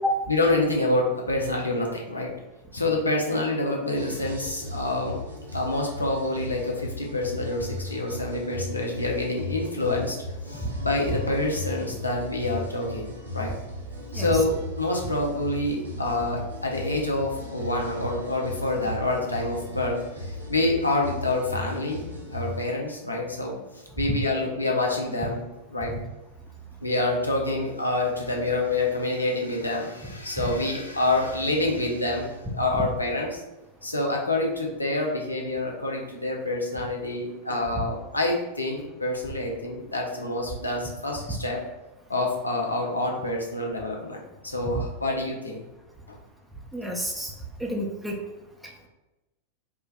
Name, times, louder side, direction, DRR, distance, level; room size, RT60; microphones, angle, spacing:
voice 1, 0.3-2.3 2.7-5.2 5.5-10.2 10.5-13.5 14.1-25.9 26.8-33.4 33.8-41.6 42.1-45.6 46.1-46.2, left 2 dB, 80° left, -1 dB, 0.6 m, -27 dB
sound 1, 3.9-22.6, left 2 dB, 75° right, 0.6 m, -36 dB
voice 2, 46.7-47.3 47.6-48.2, equal, 5° right, -1 dB, 0.5 m, -29 dB
4.4 x 2.2 x 2.3 m, 1.0 s
figure-of-eight pair, 90°, 0 cm